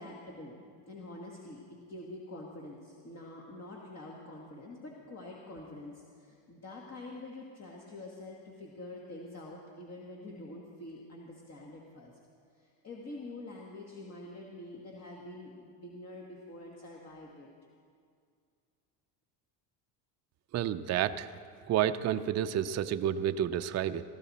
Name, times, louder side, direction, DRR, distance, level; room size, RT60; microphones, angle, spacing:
voice 1, 0.0-12.1 12.5-17.5, left 2 dB, 35° left, -2 dB, 1.9 m, -46 dB
voice 2, 20.5-21.3 21.7-24.0, right 10 dB, 35° right, 9 dB, 0.5 m, -30 dB
18.0 x 14.5 x 4.2 m, 2.2 s
cardioid pair, 110°, 46 cm